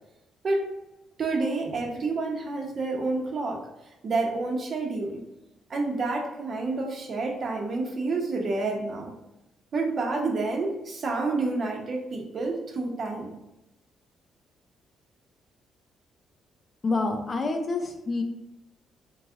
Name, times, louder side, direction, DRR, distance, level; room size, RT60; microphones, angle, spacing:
voice 1, 1.2-3.6 4.0-5.2 5.7-9.1 9.7-13.3, right 3 dB, 50° right, 0 dB, 0.9 m, -29 dB
voice 2, 16.8-18.2, left 3 dB, 35° left, 5 dB, 0.6 m, -27 dB
3.7 x 3.2 x 3.7 m, 0.93 s
cardioid pair, 90°, 0 cm